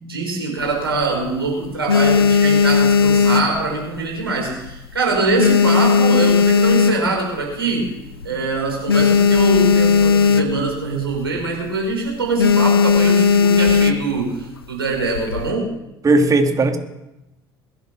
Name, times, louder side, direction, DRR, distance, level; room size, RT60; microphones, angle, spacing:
voice 1, 0.1-7.9 8.2-15.7, right 3 dB, 85° right, 0 dB, 5.1 m, -23 dB
sound 1, 0.6-1.3 1.7-4.2 4.5-4.9 5.2-7.4 7.9-8.0 8.1-8.3 8.6-10.8 11.1-11.4 11.7-11.9 12.4-14.2 14.9-15.5, left 5 dB, 85° left, 0.6 m, -16 dB
voice 2, 16.0-16.8, right 2 dB, 30° right, 5 dB, 2.7 m, -17 dB
21.5 x 10.5 x 6.3 m, 0.92 s
figure-of-eight pair, 65°, 12 cm